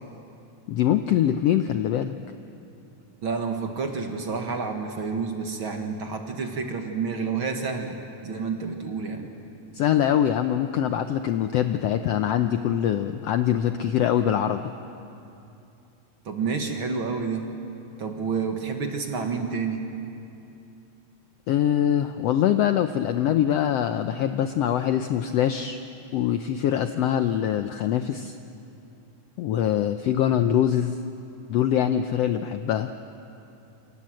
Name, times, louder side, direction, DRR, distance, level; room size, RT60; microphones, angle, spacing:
voice 1, 0.7-2.1 9.7-14.7 21.5-25.8 26.1-28.3 29.4-31.0 31.5-32.9, left 10 dB, 90° left, 8 dB, 1.4 m, -23 dB
voice 2, 3.2-8.0 8.2-9.3 16.3-17.5 18.0-19.8, right 5 dB, 45° right, 4 dB, 2.1 m, -29 dB
28.5 x 26.0 x 7.7 m, 2.8 s
omnidirectional pair, 3.8 m